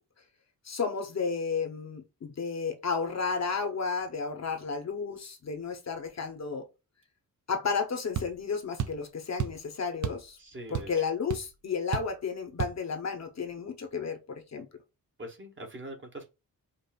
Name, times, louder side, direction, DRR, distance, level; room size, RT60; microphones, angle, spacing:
voice 1, 0.6-6.6 7.5-10.4 10.7-14.7, left 5 dB, 45° left, 0.8 m, -32 dB
sound 1, 8.1-8.3 8.8-9.0 9.4-9.6 10.0-10.3 10.5-11.0 11.3-11.4 11.9-12.2 12.6-12.8, right 9 dB, 50° right, 0.5 m, -32 dB
voice 2, 10.4-10.9 15.2-16.3, right 1 dB, 30° right, 1.0 m, -42 dB
5.2 x 2.4 x 2.3 m
wide cardioid pair, 145°, 37 cm